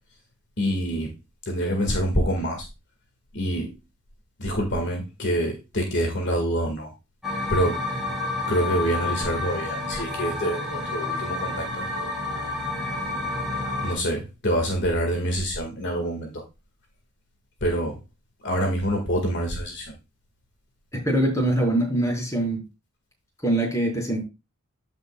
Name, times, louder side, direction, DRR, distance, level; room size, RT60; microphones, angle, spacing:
voice 1, 0.6-1.1 1.5-2.7 3.3-3.7 4.4-6.9 7.5-7.8 8.5-11.9 13.8-16.4 17.6-18.0 18.4-19.9, equal, 55° left, 2 dB, 1.9 m, -26 dB
sound 1, 7.2-13.9, left 2 dB, ahead, 3.2 m, -29 dB
voice 2, 20.9-22.6 23.4-24.2, right 1 dB, 15° left, -1 dB, 4.4 m, -23 dB
15.0 x 5.5 x 2.3 m, 0.26 s
head